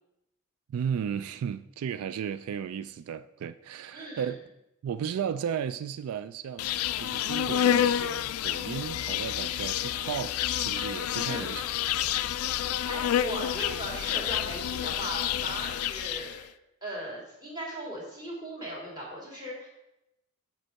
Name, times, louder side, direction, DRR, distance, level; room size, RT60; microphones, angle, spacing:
voice 1, 0.7-4.4 4.8-11.6, right 8 dB, 85° right, 0.3 m, -35 dB
voice 2, 3.9-4.3 11.2-11.5 12.5-16.4 16.8-19.7, right 1 dB, 20° right, 2.6 m, -38 dB
Insect, 6.6-16.4, left 10 dB, 85° left, 0.3 m, -29 dB
7.9 x 4.4 x 5.7 m
head